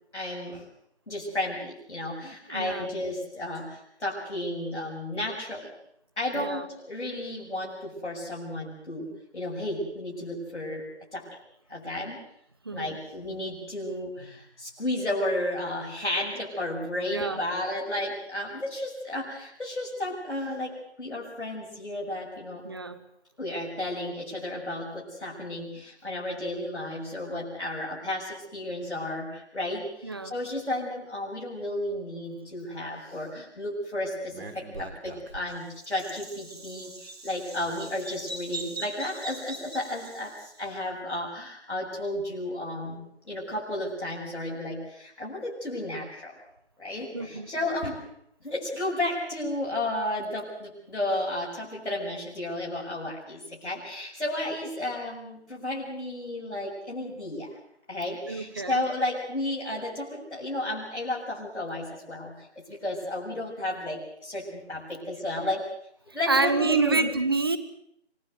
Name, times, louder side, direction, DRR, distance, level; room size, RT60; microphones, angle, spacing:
voice 1, 0.1-0.7 1.1-5.7 6.2-10.9 11.1-11.3 11.7-12.2 12.7-22.6 23.4-46.4 46.8-48.0 48.4-57.5 57.9-65.7 66.1-67.1, left 1 dB, 75° left, -4 dB, 7.3 m, -33 dB
voice 2, 2.5-2.9 6.3-6.7 12.6-13.0 17.1-17.4 22.6-23.0 30.0-30.3 47.1-47.5 58.3-58.9 66.3-67.6, right 3 dB, 20° right, 13 dB, 1.0 m, -27 dB
Bird vocalization bird call bird song, 34.3-40.6, right 2 dB, 60° right, 3.6 m, -41 dB
26.5 x 16.5 x 7.9 m, 0.71 s
figure-of-eight pair, 165°, 34 cm